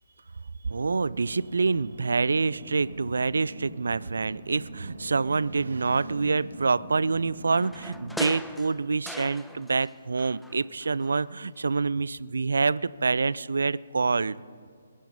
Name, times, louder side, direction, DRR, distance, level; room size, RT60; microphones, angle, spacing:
sound 1, 0.6-8.2, right 1 dB, 50° right, 3.6 m, -44 dB
voice 1, 0.7-14.4, right 4 dB, 65° right, 21 dB, 0.3 m, -26 dB
sound 2, 7.5-9.9 10.2-11.3 11.6-11.7, left 1 dB, ahead, 0.5 m, -40 dB
21.5 x 9.8 x 5.4 m, 2.3 s
figure-of-eight pair, 135°, 0 cm